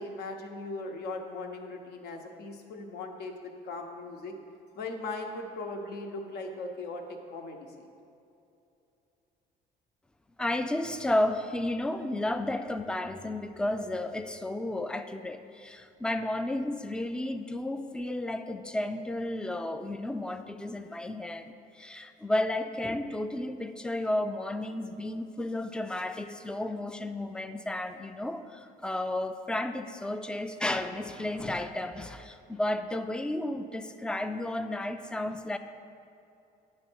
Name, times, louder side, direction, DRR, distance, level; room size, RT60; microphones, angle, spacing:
voice 1, 0.0-4.3 4.7-7.7, left 2 dB, 70° left, 3 dB, 0.9 m, -39 dB
voice 2, 10.4-35.6, left 1 dB, 5° left, 9 dB, 0.3 m, -32 dB
9.5 x 3.3 x 6.1 m, 2.7 s
cardioid pair, 110°, 17 cm